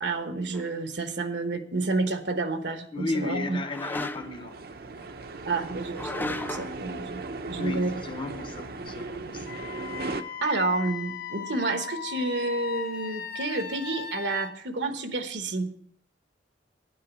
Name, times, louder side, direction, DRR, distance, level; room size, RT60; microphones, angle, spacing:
voice 1, 0.0-3.6 5.4-7.2 7.5-7.9 10.4-15.7, right 3 dB, 80° right, 8 dB, 1.2 m, -29 dB
sound 1, 0.5-0.7 3.7-4.5 5.9-6.8, left 2 dB, 10° left, 0.4 m, -35 dB
voice 2, 2.9-5.1 7.5-9.6, left 3 dB, 30° left, 7 dB, 0.8 m, -35 dB
sound 2, 4.0-10.2, right 3 dB, 60° right, 0.7 m, -37 dB
Wind instrument woodwind instrument, 9.5-14.5, left 7 dB, 55° left, 0.9 m, -37 dB
9.9 x 8.5 x 6.1 m, 0.62 s
head